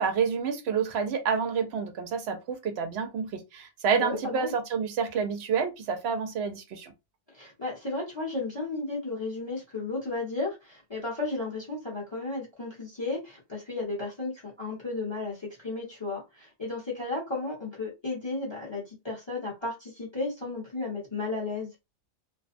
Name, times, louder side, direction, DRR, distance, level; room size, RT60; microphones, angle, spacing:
voice 1, 0.0-6.9, right 6 dB, 70° right, 0.9 m, -29 dB
voice 2, 3.9-4.5 7.3-21.7, left 3 dB, 25° left, 1.0 m, -34 dB
2.6 x 2.2 x 2.5 m
omnidirectional pair, 1.2 m